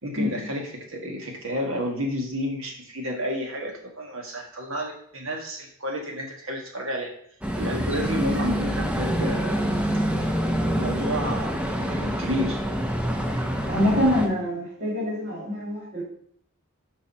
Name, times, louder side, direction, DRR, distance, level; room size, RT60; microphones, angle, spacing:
voice 1, 0.0-7.1 7.6-9.6 9.9-10.0 10.7-11.6 11.9-12.6, equal, 65° right, 2 dB, 1.9 m, -30 dB
sound 1, 7.4-14.3, equal, 5° right, 0.8 m, -26 dB
voice 2, 13.7-16.0, left 1 dB, 45° right, -8 dB, 2.6 m, -25 dB
7.0 x 5.4 x 5.6 m, 0.65 s
head